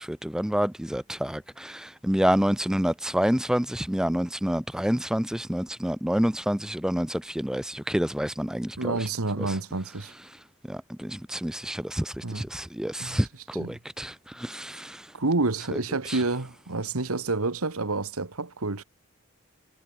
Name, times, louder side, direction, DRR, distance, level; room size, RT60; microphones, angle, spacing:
voice 1, 0.0-9.0 9.4-9.6 10.7-15.1 16.1-16.2, equal, 5° right, 0.4 m, -28 dB
voice 2, 8.8-10.1 12.2-12.4 13.0-13.2 13.5-13.8 15.1-18.8, right 3 dB, 80° right, 1.5 m, -29 dB
head